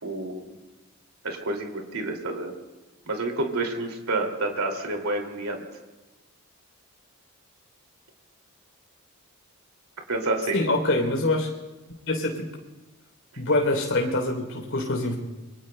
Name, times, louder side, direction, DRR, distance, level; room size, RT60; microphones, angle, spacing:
voice 1, 0.0-0.6 1.2-2.5 3.1-5.6 10.1-10.6, right 2 dB, 80° right, 3 dB, 2.5 m, -29 dB
voice 2, 10.5-11.5 12.1-12.5 13.4-15.2, left 2 dB, 65° left, 1 dB, 3.3 m, -24 dB
27.5 x 24.0 x 2.2 m, 1.1 s
head